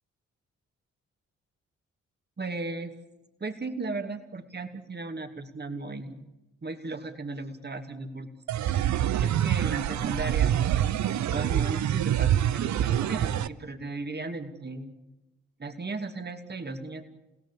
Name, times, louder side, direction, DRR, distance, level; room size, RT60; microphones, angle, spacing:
voice 1, 2.4-2.9 3.4-6.3 6.6-8.3 8.7-10.9 11.3-14.9 15.6-17.0, right 3 dB, 35° right, 6 dB, 2.7 m, -36 dB
sound 1, 8.5-13.5, right 11 dB, 70° right, 0.8 m, -26 dB
30.0 x 17.0 x 8.6 m, 0.99 s
supercardioid pair, 45°, 30 cm